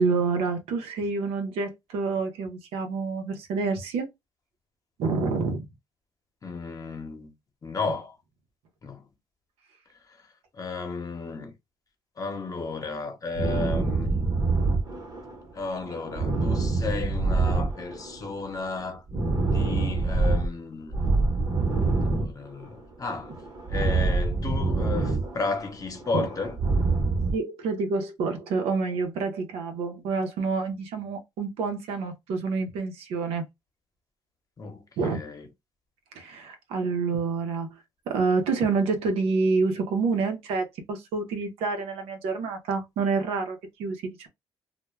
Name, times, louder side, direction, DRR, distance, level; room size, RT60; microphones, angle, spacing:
voice 1, 0.0-4.1 5.0-5.7 26.1-26.3 27.3-33.4 35.0-35.3 36.2-37.7 38.1-44.3, right 4 dB, 85° right, 0.6 m, -28 dB
voice 2, 6.4-7.3 7.6-8.1 8.8-9.0 10.5-11.5 12.2-14.3 15.5-19.0 19.4-21.0 22.0-23.3 23.7-26.6 34.6-35.5, left 4 dB, 35° left, 0.9 m, -33 dB
sound 1, 13.3-15.5 15.7-18.3 18.5-20.5 20.9-22.8 23.1-25.6 25.9-27.3, right 3 dB, 45° right, 0.9 m, -26 dB
2.2 x 2.1 x 3.0 m
cardioid pair, 75°, 10 cm